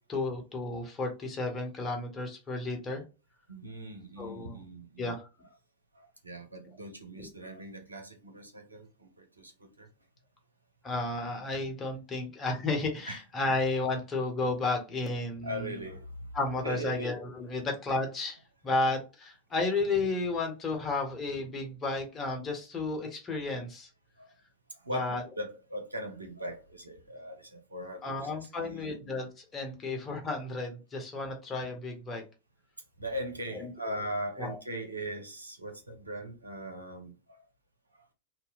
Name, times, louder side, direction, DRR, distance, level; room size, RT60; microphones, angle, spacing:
voice 1, 0.1-3.0 4.2-4.6 5.0-5.2 7.2-7.3 10.8-15.7 16.3-23.9 24.9-25.2 28.0-32.2 33.6-33.7 34.4-34.6, left 3 dB, 20° left, 1.0 m, -32 dB
voice 2, 3.5-5.2 5.9-9.9 13.1-13.2 15.4-17.1 17.5-17.6 24.2-24.3 24.7-28.9 33.0-37.4 37.9-38.0, right 1 dB, 80° right, 0.7 m, -40 dB
2.8 x 2.1 x 4.0 m
figure-of-eight pair, 90°, 0 cm